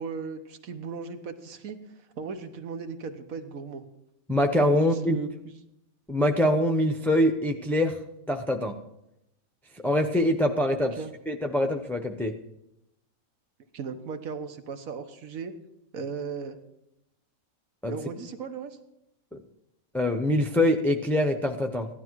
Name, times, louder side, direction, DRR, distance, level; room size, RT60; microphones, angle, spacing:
voice 1, 0.0-1.8 2.2-3.8 4.7-5.5 11.0-11.1 13.7-15.5 15.9-16.6 17.9-18.8, right 5 dB, 70° right, 8 dB, 1.5 m, -36 dB
voice 2, 4.3-5.2 6.1-8.0 8.3-8.7 9.8-11.0 11.3-12.3 17.8-17.9 19.9-21.9, left 1 dB, ahead, 3 dB, 0.6 m, -24 dB
16.0 x 11.5 x 4.7 m, 0.84 s
omnidirectional pair, 1.5 m